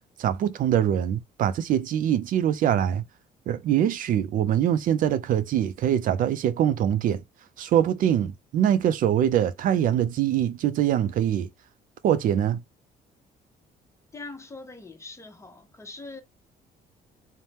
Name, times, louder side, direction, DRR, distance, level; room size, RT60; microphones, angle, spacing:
voice 1, 0.2-3.0 3.5-7.2 7.6-11.5 12.0-12.6, right 10 dB, 60° right, 0.4 m, -23 dB
voice 2, 14.1-16.2, left 3 dB, 15° left, 0.8 m, -42 dB
2.8 x 2.0 x 3.2 m
cardioid pair, 100°, 16 cm